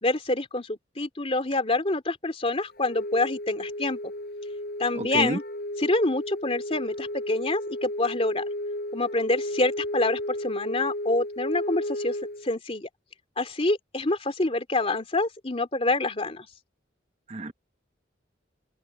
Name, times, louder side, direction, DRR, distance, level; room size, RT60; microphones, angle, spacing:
voice 1, 0.0-4.1 4.8-5.4 5.8-8.4 8.9-12.2 12.4-12.9 13.4-16.5, left 2 dB, 30° left, 3.0 m, -27 dB
Wind instrument woodwind instrument, 2.7-12.5, left 1 dB, 50° left, 4.8 m, -33 dB
voice 2, 5.0-5.4 17.3-17.5, right 2 dB, 35° right, 1.0 m, -29 dB
head